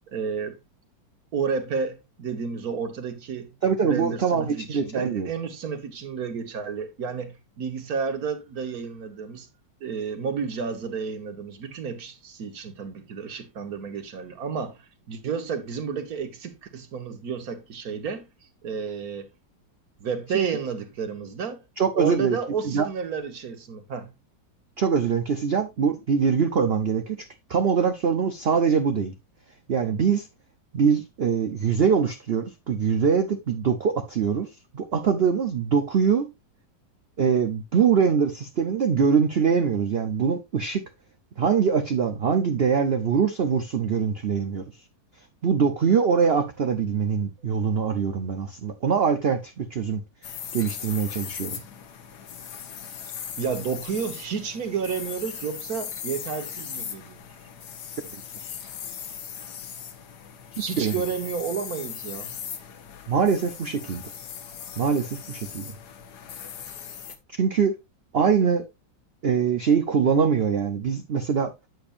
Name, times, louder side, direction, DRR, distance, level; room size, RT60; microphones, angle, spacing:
voice 1, 0.1-0.6 1.3-3.5 3.9-9.5 9.8-14.8 15.1-18.3 18.6-19.3 20.0-21.6 21.9-24.1 53.4-57.2 60.6-62.3, right 6 dB, 55° right, 1.5 m, -31 dB
voice 2, 3.6-5.3 20.3-20.5 21.8-22.4 22.6-22.9 24.8-27.2 27.5-29.1 29.7-30.3 30.7-34.5 34.7-36.3 37.2-40.8 41.4-44.6 45.4-50.0 50.5-51.6 58.4-58.5 60.5-61.0 63.1-64.0 64.8-65.7 67.3-67.8 68.1-68.7 69.2-71.5, right 6 dB, 75° right, 0.5 m, -23 dB
sound 1, 50.2-67.2, left 8 dB, 65° left, 1.4 m, -38 dB
8.6 x 7.9 x 2.5 m
omnidirectional pair, 2.0 m